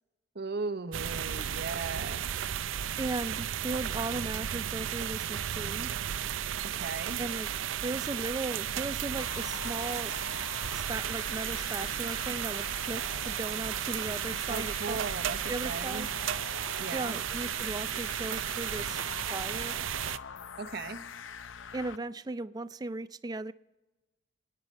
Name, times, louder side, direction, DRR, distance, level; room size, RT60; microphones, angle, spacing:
voice 1, 0.3-2.6 6.6-7.2 14.5-15.4 15.6-16.1 16.8-17.2 20.6-21.0, right 4 dB, 55° right, 10 dB, 1.0 m, -37 dB
sound 1, 0.9-20.2, right 10 dB, 85° right, 0.5 m, -34 dB
voice 2, 3.0-5.9 7.2-7.5 7.8-10.1 10.7-15.0 15.5-16.1 16.9-19.0 19.3-19.8 21.7-23.5, right 2 dB, 20° right, 14 dB, 0.4 m, -37 dB
sound 2, 9.2-22.0, left 6 dB, 85° left, 0.6 m, -45 dB
27.0 x 9.7 x 4.4 m, 1.1 s
head